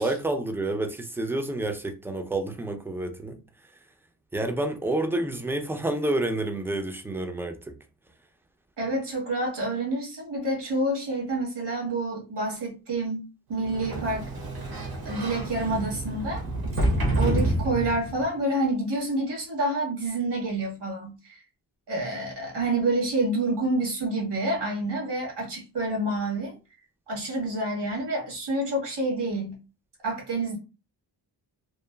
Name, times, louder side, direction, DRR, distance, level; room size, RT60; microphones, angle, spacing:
voice 1, 0.0-3.4 4.3-7.8 17.2-17.5, right 2 dB, 5° right, 0.4 m, -29 dB
voice 2, 8.8-14.3 15.0-16.4 16.8-16.9 17.1-21.4 21.9-26.6 27.1-29.6 30.0-30.6, right 2 dB, 80° right, 1.5 m, -28 dB
Sliding door, 13.6-18.3, right 1 dB, 60° right, 0.8 m, -28 dB
3.0 x 2.3 x 2.2 m
cardioid pair, 90°, 40 cm